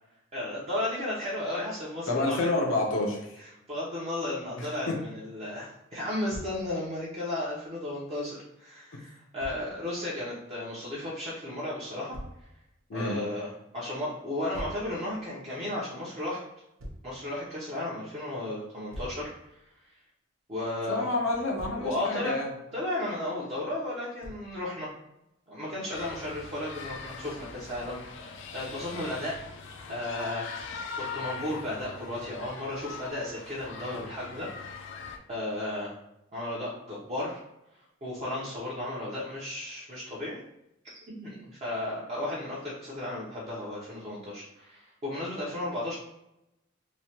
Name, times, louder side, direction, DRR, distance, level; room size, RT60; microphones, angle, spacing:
voice 1, 0.3-2.4 3.7-12.2 12.9-16.4 17.0-19.3 20.5-21.1 21.8-22.3 22.7-24.9 25.5-29.4 29.9-30.5 31.0-34.8 35.3-36.0 36.3-37.4 38.0-40.4 40.9-45.9, left 1 dB, 30° right, -8 dB, 0.6 m, -34 dB
voice 2, 2.1-3.3 4.6-5.0 12.9-13.2 20.9-22.5, left 2 dB, 80° left, -1 dB, 0.7 m, -28 dB
Thump thud, 6.3-6.6 9.4-9.6 12.1-12.4 14.5-14.9 16.8-17.1 18.9-19.3 21.3-21.9 24.2-24.5, equal, 80° right, 0.6 m, -41 dB
sound 1, 25.9-35.2, left 5 dB, 65° left, 0.3 m, -41 dB
3.1 x 2.1 x 2.8 m, 0.85 s
head